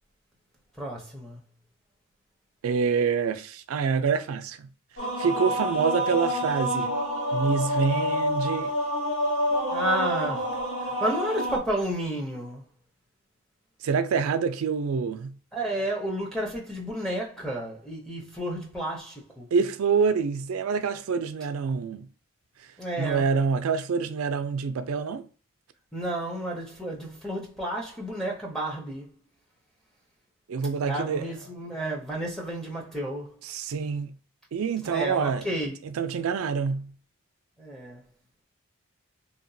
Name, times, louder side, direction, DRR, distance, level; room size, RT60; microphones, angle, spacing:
voice 1, 0.8-1.4 9.7-10.5 10.8-12.6 15.5-19.5 22.8-23.3 25.9-29.1 30.8-33.3 34.8-35.8 37.6-38.0, right 1 dB, ahead, 0.5 m, -31 dB
voice 2, 2.6-4.7 5.2-6.9 7.3-8.7 13.8-15.4 19.5-22.1 23.0-25.3 30.5-31.3 33.4-34.2 34.5-35.5 35.8-36.9, right 5 dB, 75° right, 0.4 m, -26 dB
sound 1, 5.0-11.6, equal, 75° left, 1.4 m, -28 dB
2.9 x 2.1 x 2.6 m
head